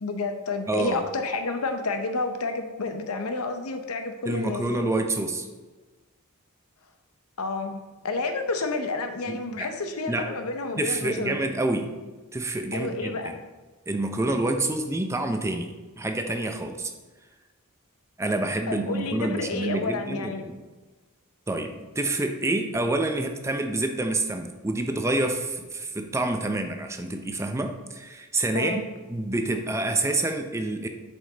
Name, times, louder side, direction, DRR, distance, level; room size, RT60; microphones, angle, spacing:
voice 1, 0.0-4.7 7.4-11.4 12.7-13.4 18.7-20.5 28.5-28.9, left 3 dB, 70° left, 6 dB, 0.7 m, -30 dB
voice 2, 0.7-1.0 4.2-5.5 9.3-9.7 10.1-10.3 10.8-11.9 12.3-13.3 13.9-16.9 18.2-20.6 21.5-28.8 29.1-30.9, right 2 dB, 10° right, 5 dB, 0.5 m, -28 dB
7.3 x 5.2 x 3.9 m, 1.3 s
head